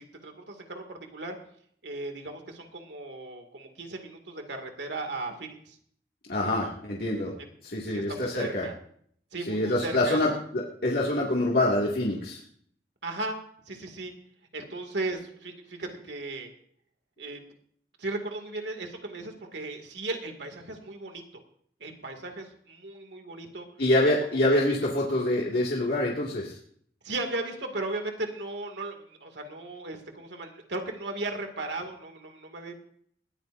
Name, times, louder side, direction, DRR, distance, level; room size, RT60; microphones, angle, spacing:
voice 1, 0.0-1.4 1.8-5.8 7.9-8.7 9.3-10.2 13.0-13.4 13.7-14.1 14.5-16.5 17.2-17.4 18.0-21.4 21.8-23.7 24.0-24.4 27.0-32.7, right 2 dB, 90° right, 4 dB, 2.2 m, -36 dB
voice 2, 6.3-7.3 7.6-8.7 9.5-12.4 23.8-26.6, left 1 dB, 60° left, -3 dB, 2.1 m, -26 dB
20.0 x 14.5 x 2.6 m, 0.62 s
head